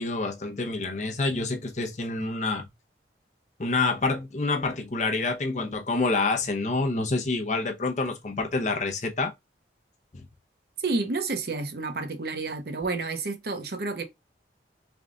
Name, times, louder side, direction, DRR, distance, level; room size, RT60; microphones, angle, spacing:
voice 1, 0.0-2.6 3.6-9.3 10.1-10.2, left 3 dB, 40° left, 0.6 m, -27 dB
voice 2, 10.8-14.0, right 3 dB, 55° right, 0.7 m, -30 dB
3.5 x 2.3 x 3.6 m
head